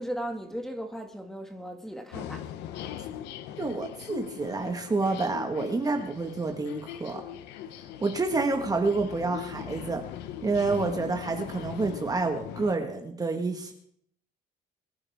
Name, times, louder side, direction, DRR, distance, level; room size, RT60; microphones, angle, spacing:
voice 1, 0.0-2.5, equal, ahead, 2.0 m, -36 dB
sound 1, 2.1-12.8, left 11 dB, 90° left, 0.9 m, -40 dB
voice 2, 3.6-7.2 8.0-10.0 10.4-13.7, right 3 dB, 20° right, 1.6 m, -28 dB
23.5 x 10.5 x 3.6 m
cardioid pair, 110°, 17 cm